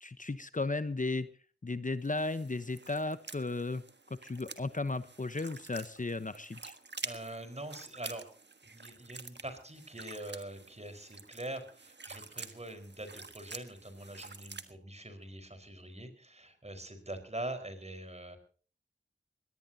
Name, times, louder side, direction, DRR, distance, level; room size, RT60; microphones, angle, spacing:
voice 1, 0.0-1.3 1.6-3.8 4.2-6.7, left 3 dB, 40° left, 13 dB, 0.9 m, -35 dB
sound 1, 2.0-14.7, right 4 dB, 60° right, 1.4 m, -48 dB
voice 2, 7.0-8.3 8.7-18.4, right 1 dB, 35° right, 8 dB, 4.5 m, -43 dB
22.0 x 18.0 x 2.8 m, 0.41 s
wide cardioid pair, 45°, 20 cm